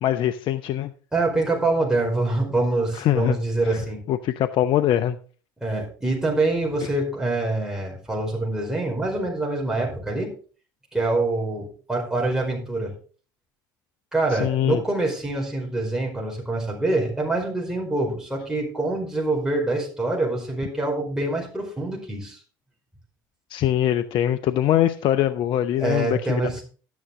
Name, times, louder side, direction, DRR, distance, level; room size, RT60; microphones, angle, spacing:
voice 1, 0.0-0.9 2.9-3.4 3.7-3.8 4.1-5.2 14.3-14.8 23.5-26.4, left 11 dB, 50° left, 12 dB, 0.6 m, -22 dB
voice 2, 1.1-4.0 5.6-10.3 10.9-12.9 14.1-22.4 25.8-26.6, right 2 dB, 5° right, -2 dB, 4.9 m, -25 dB
12.0 x 9.6 x 3.6 m, 0.39 s
hypercardioid pair, 70°, 11 cm